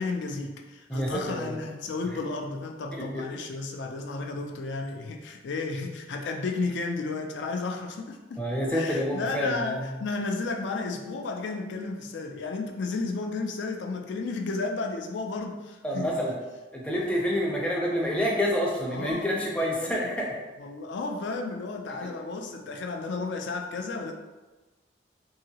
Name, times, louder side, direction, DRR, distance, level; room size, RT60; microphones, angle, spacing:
voice 1, 0.0-8.4 8.7-16.1 18.9-20.1 20.6-24.1, left 3 dB, 75° left, 3 dB, 0.4 m, -33 dB
voice 2, 0.9-1.6 3.1-3.2 8.4-9.9 15.8-16.4 16.7-20.4, equal, 5° left, -3 dB, 0.5 m, -28 dB
2.8 x 2.8 x 2.7 m, 1.2 s
head